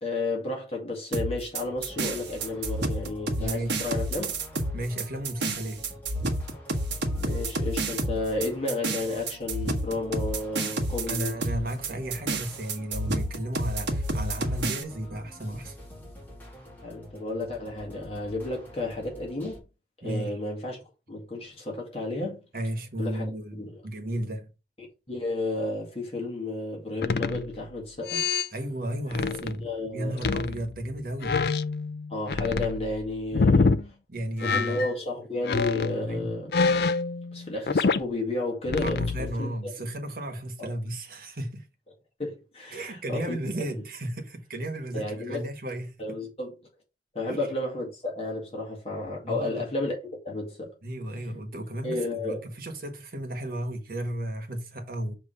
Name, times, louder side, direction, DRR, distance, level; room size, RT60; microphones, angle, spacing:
voice 1, 0.0-4.4 7.1-11.4 16.8-19.6 20.0-20.8 21.1-22.4 23.0-23.2 23.6-23.7 24.8-28.4 29.1-29.2 29.6-30.3 32.1-33.8 34.4-36.6 37.3-39.7 40.6-40.7 42.2-43.4 44.9-45.5 46.0-46.6 47.1-50.0 50.2-50.7 51.8-52.5, left 2 dB, 35° left, 2.0 m, -32 dB
sound 1, 1.1-14.8, right 2 dB, 80° right, 1.3 m, -30 dB
sound 2, 1.6-19.6, left 1 dB, 10° left, 2.1 m, -47 dB
voice 2, 3.3-3.8 4.7-5.9 11.1-15.7 20.0-20.4 22.5-24.5 28.5-31.4 33.3-33.7 34.1-34.8 36.0-36.3 38.8-41.6 42.7-45.9 47.3-47.5 49.2-49.6 50.8-55.1, right 1 dB, 55° right, 1.5 m, -34 dB
sound 3, 27.0-27.7 28.1-28.5 29.1-29.6 30.2-30.9 31.2-33.8 34.4-34.9 35.4-38.0 38.6-39.3, left 4 dB, 60° left, 0.5 m, -26 dB
6.8 x 3.2 x 5.6 m
head